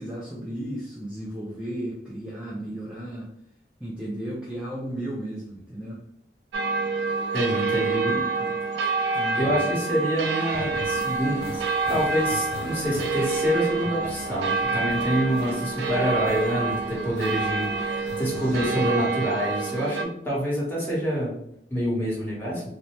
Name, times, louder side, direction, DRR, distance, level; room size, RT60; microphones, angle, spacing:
voice 1, 0.0-3.3 3.8-6.0 7.5-8.6 9.1-9.7 18.3-18.4, right 1 dB, 5° right, -5 dB, 0.4 m, -34 dB
sound 1, 6.5-20.0, right 4 dB, 80° right, 0.4 m, -27 dB
voice 2, 7.3-8.0 9.3-11.6 11.9-21.4 21.7-22.6, equal, 15° left, -7 dB, 1.1 m, -27 dB
sound 2, 10.5-18.7, left 2 dB, 60° left, 0.4 m, -40 dB
2.6 x 2.0 x 3.1 m, 0.75 s
head